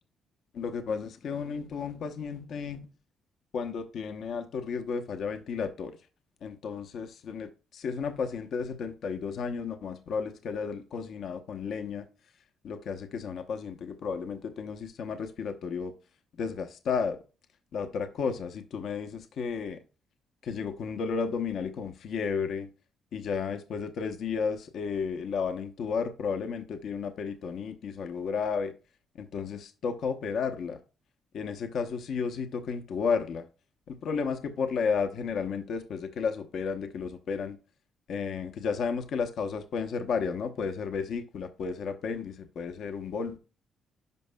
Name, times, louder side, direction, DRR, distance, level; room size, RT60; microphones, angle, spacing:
voice 1, 0.5-2.9 3.5-5.9 6.4-12.1 12.6-15.9 16.4-17.2 17.7-19.8 20.4-22.7 23.1-28.7 29.2-30.8 31.3-33.5 33.9-37.6 38.1-43.4, left 5 dB, 65° left, 0.8 m, -33 dB
10.5 x 5.3 x 2.2 m
cardioid pair, 90°, 0 cm